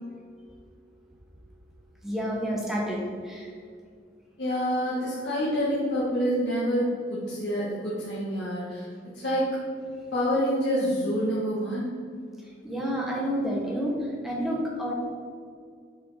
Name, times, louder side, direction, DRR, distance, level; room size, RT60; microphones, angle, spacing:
voice 1, 2.0-3.5 12.6-14.9, equal, ahead, -3 dB, 1.3 m, -29 dB
voice 2, 4.4-8.9 9.1-9.6 10.1-11.9, equal, 80° left, -8 dB, 1.5 m, -27 dB
7.0 x 5.0 x 4.9 m, 2.2 s
head